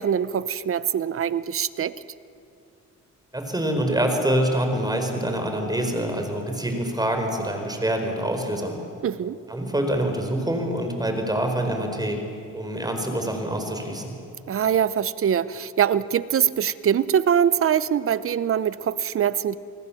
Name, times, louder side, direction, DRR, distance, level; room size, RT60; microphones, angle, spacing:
voice 1, 0.0-1.9 9.0-9.4 14.5-19.6, right 8 dB, 45° right, 17 dB, 0.8 m, -23 dB
voice 2, 3.3-8.8 9.5-12.2 12.5-14.1, right 1 dB, 15° right, 4 dB, 4.6 m, -25 dB
28.5 x 20.0 x 7.3 m, 2.6 s
cardioid pair, 90°, 30 cm